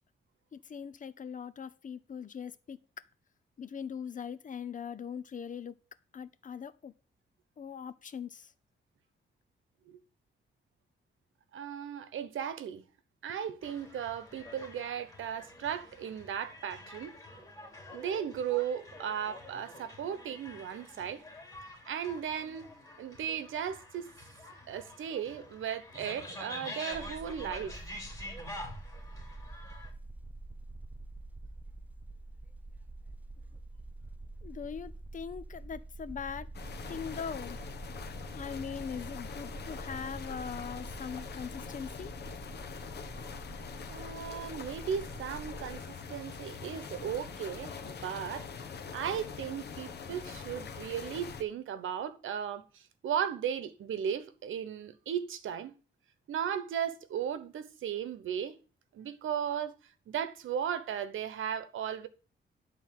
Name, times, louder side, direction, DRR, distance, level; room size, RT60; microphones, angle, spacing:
voice 1, 0.5-2.8 3.6-5.8 6.1-6.9 7.6-8.5 34.4-36.5 36.9-37.6 38.3-42.1, left 7 dB, 40° left, 0.7 m, -41 dB
voice 2, 11.5-12.8 13.2-17.1 17.9-21.2 21.9-22.7 23.0-24.1 24.7-27.8 43.9-45.8 46.1-48.5 48.9-55.7 56.3-58.6 58.9-59.7 60.1-62.1, right 8 dB, 85° right, 1.1 m, -36 dB
sound 1, 13.6-29.9, left 1 dB, 15° left, 3.1 m, -47 dB
sound 2, 26.9-45.8, right 2 dB, 10° right, 0.4 m, -46 dB
sound 3, 36.5-51.4, left 5 dB, 55° left, 1.3 m, -43 dB
11.0 x 4.1 x 7.6 m
cardioid pair, 125°, 20 cm